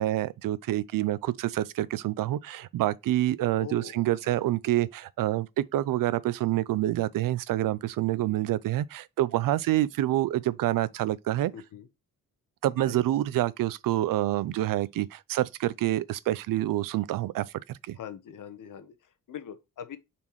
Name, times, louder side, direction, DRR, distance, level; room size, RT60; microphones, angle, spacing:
voice 1, 0.0-11.5 12.6-18.0, right 14 dB, 85° right, 0.5 m, -27 dB
voice 2, 3.6-4.4 11.5-11.9 12.8-13.0 17.9-20.0, left 8 dB, 70° left, 1.1 m, -43 dB
7.0 x 4.4 x 3.1 m
cardioid pair, 90°, 33 cm